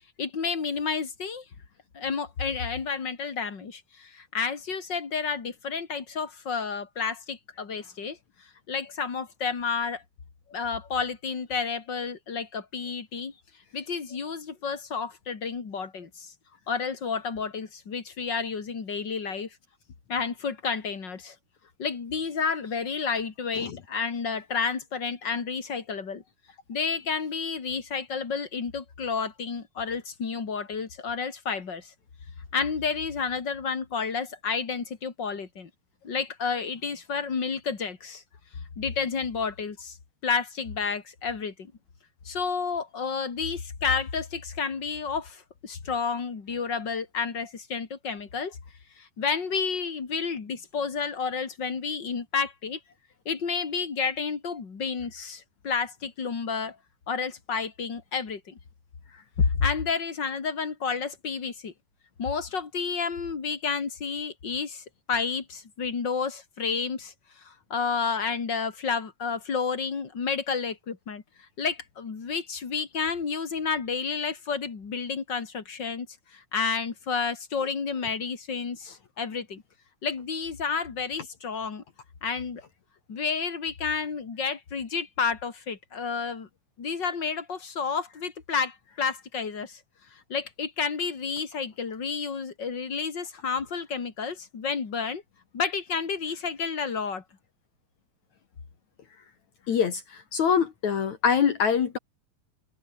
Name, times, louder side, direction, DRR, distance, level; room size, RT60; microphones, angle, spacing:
voice 1, 0.2-1.4 1.9-8.2 8.7-10.0 10.5-13.3 13.7-16.3 16.7-19.5 20.1-21.3 21.8-26.2 26.7-31.9 32.5-35.7 36.0-38.2 38.8-40.0 40.2-41.7 42.2-48.6 49.0-52.8 53.2-56.8 57.1-58.6 59.4-61.7 62.2-71.2 71.6-76.1 76.3-79.6 80.0-81.8 82.2-82.6 83.1-86.5 86.8-89.8 90.3-95.2 95.5-97.2, left 5 dB, 35° left, 2.9 m, -30 dB
voice 2, 99.7-102.0, left 7 dB, 55° left, 3.1 m, -24 dB
omnidirectional pair, 4.1 m